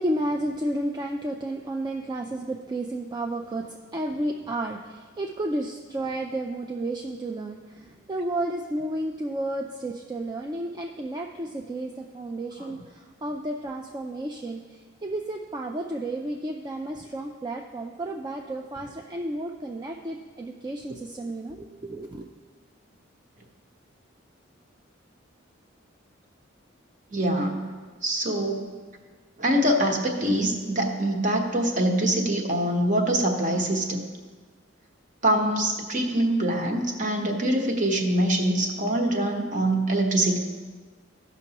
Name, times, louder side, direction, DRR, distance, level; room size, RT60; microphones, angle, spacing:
voice 1, 0.0-22.3, right 1 dB, 20° right, 2 dB, 0.4 m, -32 dB
voice 2, 27.1-27.7 28.0-28.7 29.4-34.0 35.2-40.4, right 1 dB, 40° right, 2 dB, 1.1 m, -24 dB
15.0 x 6.0 x 2.9 m, 1.4 s
head